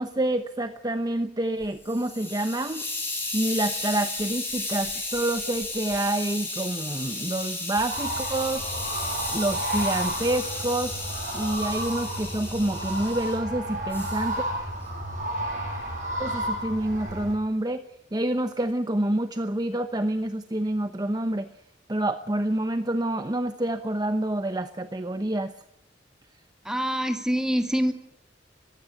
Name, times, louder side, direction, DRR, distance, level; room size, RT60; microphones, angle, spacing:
voice 1, 0.0-2.9 3.3-8.6 9.3-10.9 11.3-14.4 16.2-17.8 18.1-21.5 21.9-25.5, right 1 dB, 20° right, 9 dB, 0.9 m, -27 dB
Hiss, 1.6-13.4 13.9-14.3, left 2 dB, 10° left, 7.7 m, -34 dB
sound 1, 7.9-17.3, right 1 dB, 45° right, 7.5 m, -32 dB
voice 2, 26.7-27.9, equal, 5° right, 6 dB, 2.2 m, -25 dB
21.5 x 16.0 x 9.7 m, 0.85 s
head